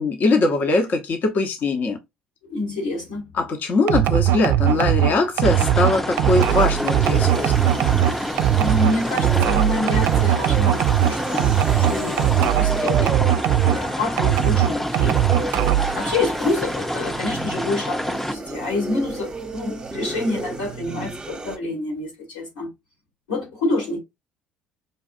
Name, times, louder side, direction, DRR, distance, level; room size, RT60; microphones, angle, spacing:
voice 1, 0.0-2.0 3.3-7.7, left 3 dB, 50° left, 0.8 m, -21 dB
voice 2, 2.5-3.4 8.5-13.2 13.6-15.2 15.9-22.7 23.3-24.0, left 2 dB, 85° left, 2.0 m, -27 dB
sound 1, 3.9-13.8 14.2-16.0, right 12 dB, 65° right, 0.3 m, -20 dB
sound 2, 5.4-18.4, left 1 dB, 5° left, 0.5 m, -28 dB
sound 3, 5.9-21.6, right 3 dB, 20° right, 0.8 m, -32 dB
5.3 x 2.4 x 2.5 m
hypercardioid pair, 55°, 4 cm